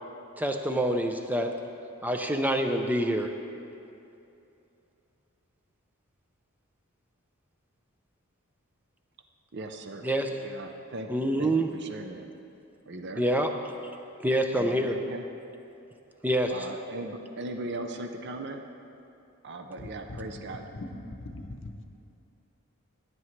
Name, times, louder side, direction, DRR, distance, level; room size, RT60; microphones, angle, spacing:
voice 1, 0.4-1.5 2.0-3.3 10.0-10.4 11.1-11.7 13.2-13.5 14.2-15.0 16.2-16.7, right 1 dB, 10° right, 5 dB, 0.5 m, -26 dB
voice 2, 9.5-10.1 10.4-12.3 12.9-13.2 14.6-15.2 16.5-18.6 19.4-20.6, right 2 dB, 50° right, 5 dB, 0.6 m, -38 dB
voice 3, 19.8-21.7, left 2 dB, 60° left, 4 dB, 0.8 m, -41 dB
15.5 x 9.2 x 3.2 m, 2.7 s
head